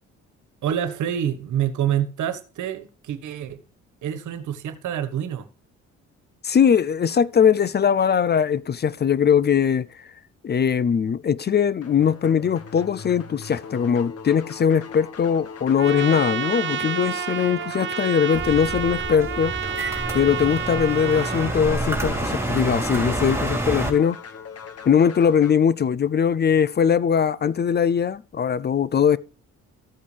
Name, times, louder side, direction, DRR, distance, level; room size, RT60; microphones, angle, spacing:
voice 1, 0.6-3.6 4.0-5.5, right 10 dB, 75° right, 1.5 m, -27 dB
voice 2, 6.4-10.0 10.4-19.5 20.1-24.2 24.9-29.2, left 7 dB, 35° left, 0.5 m, -21 dB
sound 1, 11.8-25.5, left 6 dB, 50° left, 1.7 m, -39 dB
Trumpet, 15.8-21.6, right 9 dB, 40° right, 0.6 m, -29 dB
sound 2, 18.3-23.9, right 2 dB, 10° right, 3.2 m, -28 dB
13.5 x 8.4 x 3.3 m
cardioid pair, 90°, 30 cm